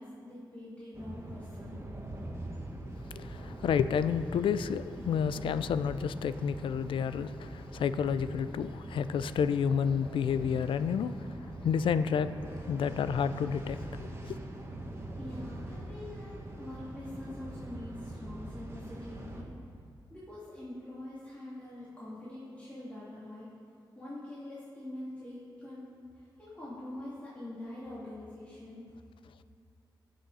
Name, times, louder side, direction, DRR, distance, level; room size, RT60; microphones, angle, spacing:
voice 1, 0.0-1.9 14.9-19.5 20.1-23.5 24.0-25.9 26.2-28.9, left 1 dB, 15° left, -10 dB, 2.6 m, -44 dB
sound 1, 0.9-19.4, right 1 dB, 30° right, 1.4 m, -43 dB
voice 2, 3.1-11.3 11.6-12.3 12.7-14.4, left 7 dB, 90° left, 13 dB, 0.4 m, -30 dB
16.0 x 6.4 x 4.1 m, 2.5 s
cardioid pair, 85°, 8 cm